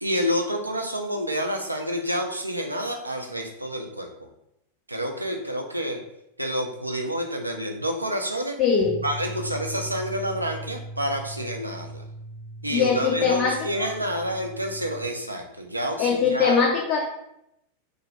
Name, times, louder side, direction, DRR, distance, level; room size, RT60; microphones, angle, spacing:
voice 1, 0.0-4.1 4.9-6.0 6.4-8.6 9.0-12.0 12.6-16.6, equal, 85° right, 3 dB, 0.3 m, -28 dB
voice 2, 8.6-9.0 12.7-13.9 16.0-17.1, left 6 dB, 35° left, 0 dB, 0.3 m, -22 dB
sound 1, 8.8-15.1, right 2 dB, 10° right, 0.6 m, -39 dB
2.2 x 2.0 x 2.8 m, 0.80 s
figure-of-eight pair, 90°, 0 cm